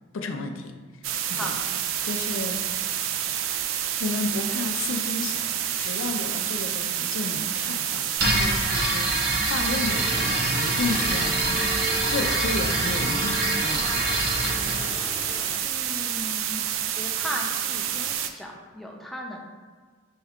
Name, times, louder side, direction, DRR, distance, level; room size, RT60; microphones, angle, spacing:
voice 1, 0.1-0.7 1.0-1.5 2.0-2.6 4.0-9.2 9.5-14.1, left 3 dB, 75° left, 5 dB, 0.4 m, -32 dB
sound 1, 1.0-18.3, right 10 dB, 75° right, 0.3 m, -28 dB
sound 2, 8.2-14.8, right 1 dB, 50° right, 0.7 m, -26 dB
sound 3, 9.8-15.5, equal, 40° left, 0.7 m, -37 dB
voice 2, 15.6-16.6 17.0-19.4, equal, ahead, -1 dB, 0.4 m, -36 dB
5.2 x 2.3 x 3.5 m, 1.6 s
head